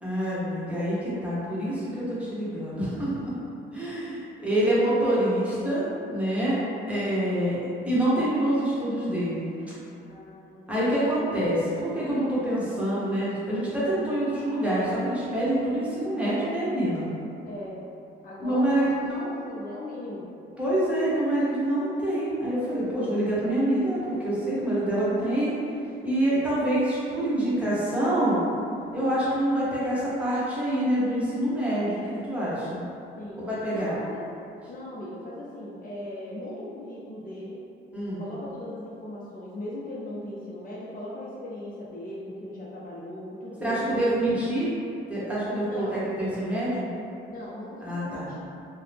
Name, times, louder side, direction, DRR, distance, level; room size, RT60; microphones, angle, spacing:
voice 1, 0.0-3.3 3.7-6.6 6.9-7.6 7.8-9.5 10.7-17.1 18.4-19.3 20.6-25.5 26.0-28.4 28.9-32.8 33.5-33.9 37.9-38.2 43.6-44.7 45.1-46.9 47.8-48.3, right 1 dB, 5° right, -9 dB, 0.9 m, -26 dB
voice 2, 10.0-11.1 17.4-17.8 18.2-20.3 33.2-33.4 33.7-34.3 34.7-37.6 38.2-44.2 45.6-46.1 47.2-48.4, left 1 dB, 45° left, -6 dB, 0.5 m, -38 dB
2.6 x 2.0 x 3.3 m, 2.7 s
cardioid pair, 90°, 20 cm